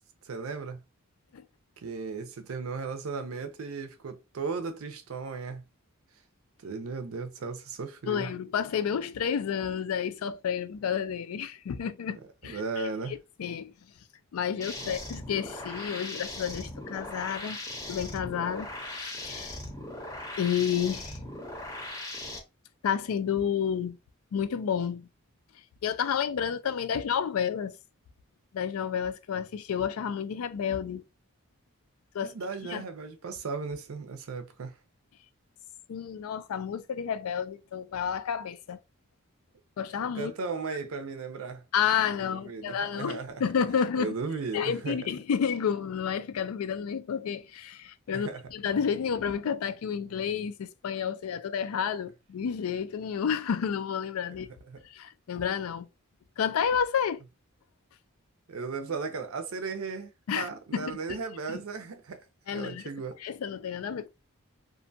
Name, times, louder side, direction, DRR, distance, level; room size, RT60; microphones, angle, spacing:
voice 1, 0.2-0.8 1.8-5.6 6.6-8.3 12.1-13.2 14.8-15.0 32.2-34.7 40.1-41.6 42.2-43.4 44.0-45.0 48.1-48.4 54.7-54.8 58.5-60.1 60.4-62.2 62.5-63.2, right 4 dB, 75° right, 0.5 m, -36 dB
voice 2, 8.1-13.7 14.3-17.6 17.9-19.6 20.4-21.2 22.8-24.0 24.3-25.1 25.8-27.8 28.5-31.0 32.1-32.3 32.7-32.8 35.9-38.8 39.8-40.3 41.7-44.2 44.5-54.5 54.8-55.9 56.4-57.2 60.3-61.2 61.5-61.6 62.5-62.9 63.2-64.1, left 7 dB, 90° left, 0.4 m, -30 dB
sound 1, 14.6-22.4, left 1 dB, 15° left, 0.6 m, -39 dB
2.5 x 2.2 x 2.6 m
head